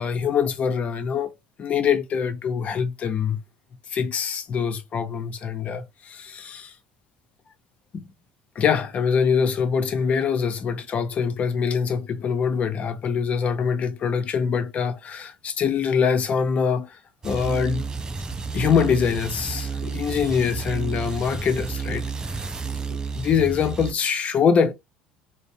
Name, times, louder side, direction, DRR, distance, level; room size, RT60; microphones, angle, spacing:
voice 1, 0.0-1.3 1.6-3.4 3.9-6.7 7.9-8.1 8.6-17.0 17.2-17.9 18.5-22.4 23.1-24.7, left 6 dB, 45° left, 0.6 m, -24 dB
sound 1, 17.2-23.9, right 5 dB, 20° right, 0.4 m, -31 dB
2.5 x 2.0 x 2.6 m
supercardioid pair, 80°, 3 cm